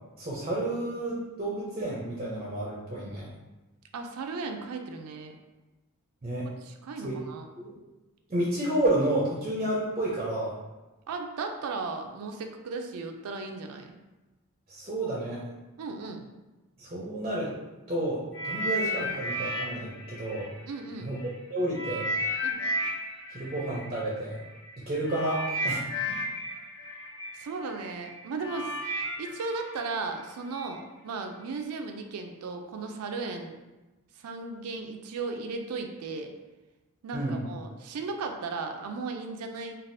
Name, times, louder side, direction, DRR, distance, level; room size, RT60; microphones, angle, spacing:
voice 1, 0.2-3.3 6.2-6.5 7.0-7.2 7.6-7.7 8.3-10.6 14.7-15.5 16.8-17.5 17.9-20.5 21.0-22.1 23.3-24.4 24.9-25.8 26.1-26.2 37.1-37.4, right 1 dB, 30° right, -4 dB, 0.5 m, -30 dB
voice 2, 3.9-5.4 6.6-7.5 11.1-13.9 15.8-16.3 20.7-21.1 22.4-22.6 27.3-28.7 29.2-33.6 34.2-36.3 37.0-39.7, right 4 dB, 90° right, 4 dB, 0.4 m, -36 dB
sound 1, 18.3-21.3 21.7-30.7 31.4-31.6, equal, 50° left, 0.5 m, -34 dB
3.3 x 2.3 x 2.6 m, 1.1 s
head